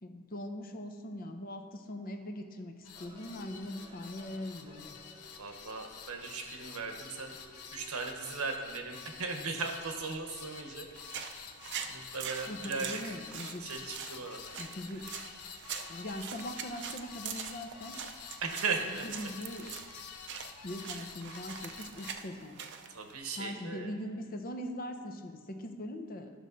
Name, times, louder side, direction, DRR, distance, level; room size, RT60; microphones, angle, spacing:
voice 1, 0.0-5.0 12.5-13.7 14.6-15.1 15.9-18.0 19.0-19.8 20.6-22.6 23.4-26.3, left 1 dB, 40° left, 6 dB, 0.7 m, -41 dB
sound 1, 2.8-22.1, left 6 dB, 90° left, 0.7 m, -49 dB
sound 2, 2.9-8.2, right 2 dB, 25° right, 0.8 m, -58 dB
voice 2, 5.4-7.4 7.7-11.3 11.9-13.2 13.6-14.4 18.4-19.1 22.9-23.9, right 4 dB, 80° right, 4 dB, 1.0 m, -37 dB
sound 3, 11.0-23.1, right 7 dB, 55° right, 0.5 m, -44 dB
12.5 x 6.3 x 4.0 m, 2.1 s
head